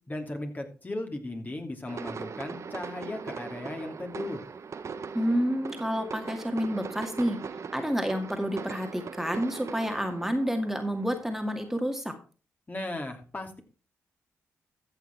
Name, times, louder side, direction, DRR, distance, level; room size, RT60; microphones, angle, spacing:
voice 1, 0.1-4.5 12.7-13.6, left 2 dB, 30° left, 4 dB, 2.7 m, -36 dB
sound 1, 1.9-11.8, right 5 dB, 60° right, 1.2 m, -40 dB
voice 2, 5.1-7.4 7.7-12.1, equal, 5° right, 4 dB, 2.1 m, -29 dB
14.0 x 6.6 x 4.5 m, 0.36 s
supercardioid pair, 50°, 6 cm